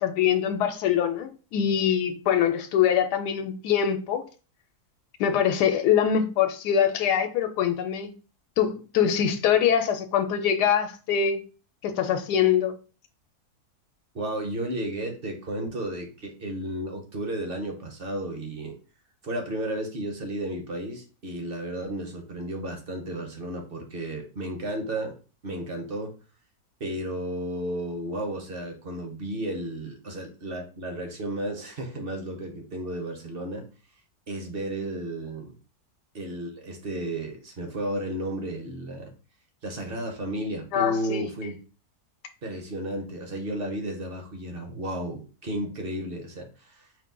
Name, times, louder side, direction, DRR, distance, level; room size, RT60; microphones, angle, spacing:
voice 1, 0.0-4.2 5.2-8.1 8.6-11.4 11.8-12.8 40.7-41.3, left 8 dB, 90° left, 1.2 m, -23 dB
voice 2, 14.1-18.7 19.2-25.1 25.4-26.1 26.8-33.6 34.3-35.6 36.1-39.1 39.6-41.6 42.4-46.9, right 1 dB, 50° right, 0.7 m, -33 dB
4.6 x 2.2 x 3.7 m
omnidirectional pair, 1.7 m